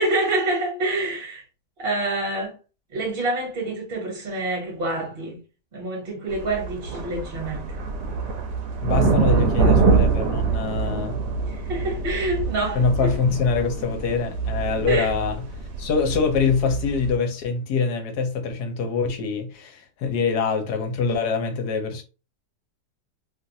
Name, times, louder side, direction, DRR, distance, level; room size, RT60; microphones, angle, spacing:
voice 1, 0.0-1.4 1.8-2.5 2.9-5.4 5.7-7.8 11.4-13.1 14.9-15.1, right 2 dB, 35° right, 1.4 m, -27 dB
sound 1, 6.3-17.1, right 4 dB, 90° right, 1.3 m, -24 dB
voice 2, 8.8-11.2 12.7-15.3 15.8-22.0, left 5 dB, 70° left, 1.2 m, -24 dB
3.0 x 2.5 x 2.6 m
omnidirectional pair, 1.8 m